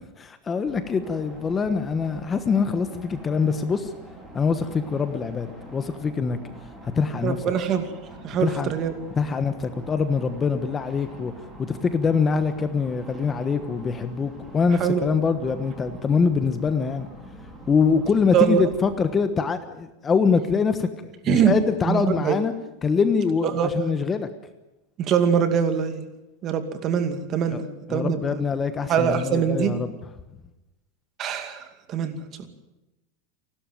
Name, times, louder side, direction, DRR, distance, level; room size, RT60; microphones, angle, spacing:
voice 1, 0.2-3.9 4.3-6.4 6.9-7.4 8.4-8.7 9.2-11.3 11.6-17.1 17.7-20.9 21.2-22.5 22.8-24.3 27.5-27.6 27.9-29.9, left 5 dB, 20° left, 10 dB, 1.2 m, -24 dB
sound 1, 0.6-19.2, right 1 dB, 5° right, 5.1 m, -44 dB
voice 2, 7.2-7.9 8.2-8.9 14.8-15.1 18.3-18.6 21.3-21.5 21.9-22.4 23.5-23.7 25.0-26.0 26.4-28.4 28.9-29.7 31.2-32.5, right 8 dB, 30° right, 8 dB, 2.4 m, -23 dB
29.0 x 12.5 x 9.2 m, 0.99 s
supercardioid pair, 150°, 0 cm